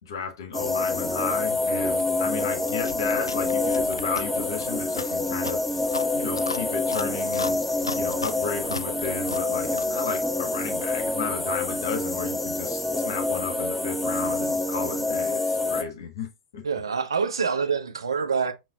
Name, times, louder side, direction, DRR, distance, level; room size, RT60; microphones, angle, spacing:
voice 1, 0.0-5.6 6.1-16.6, left 6 dB, 65° left, 1.3 m, -34 dB
sound 1, 0.5-15.8, left 2 dB, 5° left, 0.6 m, -27 dB
Chewing mastication, 2.8-10.0, left 3 dB, 85° left, 0.4 m, -37 dB
voice 2, 16.6-18.5, right 5 dB, 75° right, 0.7 m, -26 dB
5.4 x 3.0 x 2.8 m
figure-of-eight pair, 95°, 2 cm